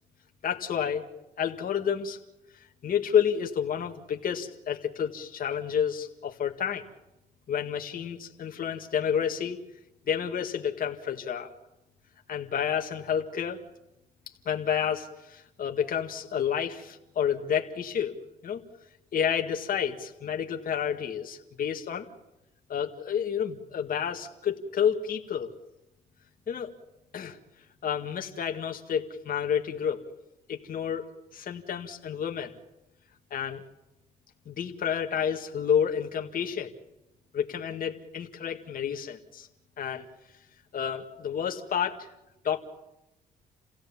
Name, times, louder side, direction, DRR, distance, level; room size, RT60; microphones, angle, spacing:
voice 1, 0.4-1.0 1.4-2.2 2.8-6.9 7.5-9.6 10.1-11.5 12.3-13.6 14.5-18.1 18.4-18.6 19.1-22.1 22.7-25.5 26.5-26.7 27.1-27.4 27.8-30.0 30.5-32.5 33.3-33.6 34.5-36.7 37.3-39.5 39.8-40.1 40.7-42.1 42.4-42.6, left 8 dB, 55° left, 3 dB, 2.0 m, -30 dB
29.0 x 16.5 x 7.2 m, 0.93 s
cardioid pair, 90°, 18 cm